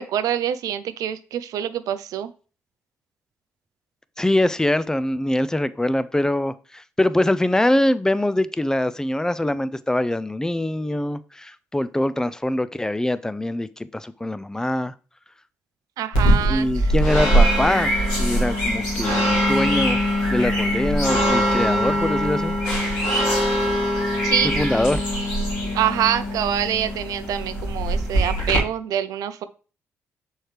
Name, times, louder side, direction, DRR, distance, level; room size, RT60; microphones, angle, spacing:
voice 1, 0.0-2.3 16.0-16.9 24.2-24.5 25.7-29.4, right 10 dB, 75° right, 0.5 m, -25 dB
voice 2, 4.2-13.7 13.9-14.9 16.4-20.0 20.3-22.5 24.6-25.0, left 1 dB, 10° left, 0.5 m, -23 dB
sound 1, 16.1-28.6, equal, 90° left, 2.0 m, -22 dB
6.3 x 4.5 x 3.3 m
supercardioid pair, 55°, 6 cm